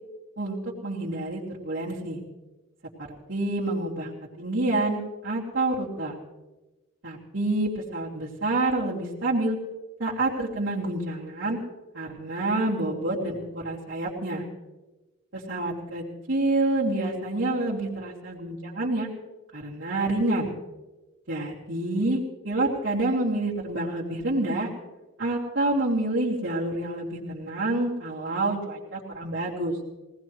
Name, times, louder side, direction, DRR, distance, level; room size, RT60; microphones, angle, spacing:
voice 1, 0.4-2.2 3.3-6.2 7.0-9.6 10.0-11.6 11.9-13.4 13.6-14.4 15.3-19.1 19.5-20.5 21.3-22.2 22.4-24.7 25.2-29.8, right 2 dB, 85° right, -8 dB, 3.0 m, -28 dB
22.0 x 19.0 x 3.1 m, 1.1 s
head